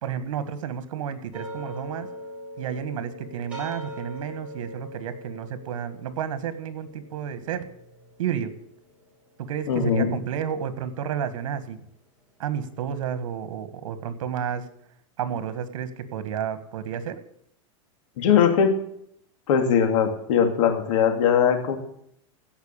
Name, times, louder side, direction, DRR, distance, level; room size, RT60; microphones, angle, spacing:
voice 1, 0.0-2.1 2.6-7.7 8.2-8.5 9.4-11.8 12.4-14.6 15.2-17.2, right 8 dB, 75° right, 12 dB, 1.7 m, -31 dB
sound 1, 1.3-10.5, equal, 5° right, 4.5 m, -42 dB
voice 2, 9.7-10.1 18.2-18.7 19.5-21.8, left 7 dB, 70° left, 5 dB, 2.7 m, -20 dB
16.5 x 5.9 x 8.6 m, 0.73 s
supercardioid pair, 140°, 17 cm